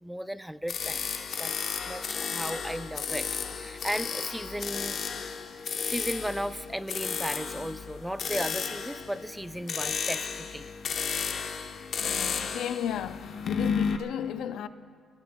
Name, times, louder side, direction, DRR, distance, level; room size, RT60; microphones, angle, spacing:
voice 1, 0.0-5.0 5.8-10.7, equal, 5° right, 0.4 m, -36 dB
sound 1, 0.7-14.0, left 6 dB, 55° left, 0.9 m, -33 dB
voice 2, 12.0-14.7, left 10 dB, 80° left, 0.4 m, -34 dB
26.5 x 20.0 x 2.2 m
cardioid pair, 90°, 0 cm